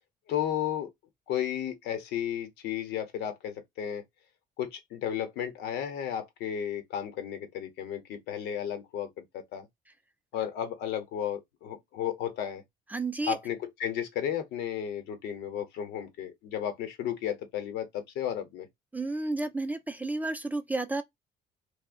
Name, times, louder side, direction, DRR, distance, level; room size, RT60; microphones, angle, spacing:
voice 1, 0.3-0.9 1.3-4.0 4.6-9.7 10.3-12.6 13.3-18.7, left 9 dB, 85° left, 0.8 m, -33 dB
voice 2, 12.9-13.3 18.9-21.0, right 2 dB, 10° right, 0.4 m, -31 dB
2.7 x 2.0 x 2.4 m
cardioid pair, 110°, 17 cm